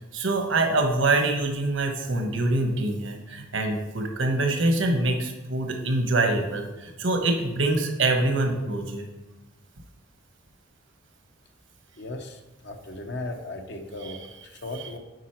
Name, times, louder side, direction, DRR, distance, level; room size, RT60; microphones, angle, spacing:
voice 1, 0.1-9.0 14.0-14.1, right 2 dB, 70° right, 4 dB, 1.1 m, -25 dB
voice 2, 12.0-15.0, left 2 dB, 60° left, 5 dB, 0.8 m, -37 dB
8.1 x 5.0 x 4.5 m, 1.1 s
head